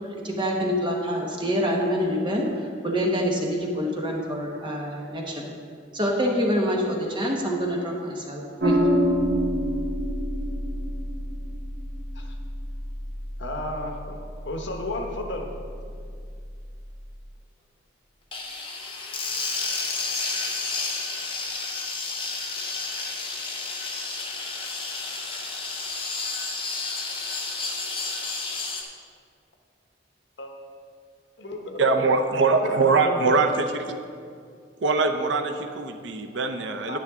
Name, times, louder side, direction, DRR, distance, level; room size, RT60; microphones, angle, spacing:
voice 1, 0.2-5.5 5.9-8.8, equal, 25° right, -1 dB, 1.0 m, -26 dB
sound 1, 8.6-17.2, equal, 50° right, 1.1 m, -28 dB
voice 2, 13.4-14.2 14.4-15.5 30.4-30.5 31.4-31.9 32.3-33.2 36.9-37.0, left 1 dB, 70° left, 3 dB, 1.0 m, -33 dB
sound 2, 18.3-28.8, left 3 dB, 30° left, 1.0 m, -31 dB
voice 3, 31.8-34.0 34.8-37.0, right 3 dB, 75° right, 6 dB, 0.6 m, -23 dB
10.0 x 9.9 x 3.6 m, 2.2 s
head